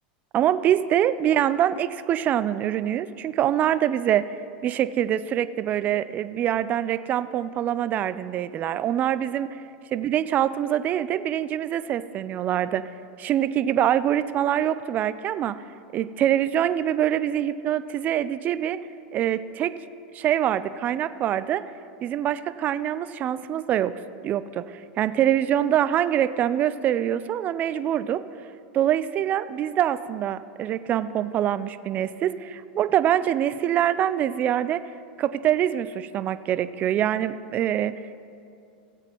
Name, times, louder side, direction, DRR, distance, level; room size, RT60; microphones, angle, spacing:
voice 1, 0.3-4.3 4.6-9.5 9.9-12.9 13.2-15.6 15.9-18.8 19.1-19.7 20.1-21.6 22.0-23.9 24.2-24.6 25.0-28.2 28.7-34.8 35.2-38.0, right 11 dB, 35° right, 14 dB, 0.4 m, -24 dB
17.5 x 7.9 x 3.0 m, 2.5 s
hypercardioid pair, 115°, 5 cm